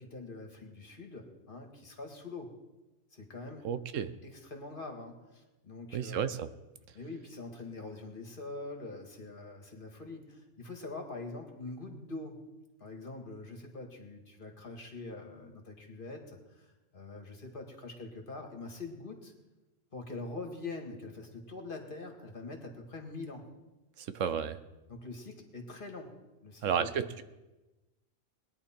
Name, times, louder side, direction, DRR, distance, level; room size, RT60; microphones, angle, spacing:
voice 1, 0.0-2.5 3.1-3.6 4.2-6.4 6.9-12.4 12.8-19.3 19.9-23.5 24.9-26.1 26.4-27.1, left 3 dB, 45° left, 2 dB, 2.0 m, -44 dB
voice 2, 3.6-4.1 5.9-6.5 24.0-24.6 26.6-27.2, right 8 dB, 80° right, 11 dB, 1.1 m, -32 dB
20.5 x 10.0 x 4.5 m, 1.1 s
omnidirectional pair, 1.3 m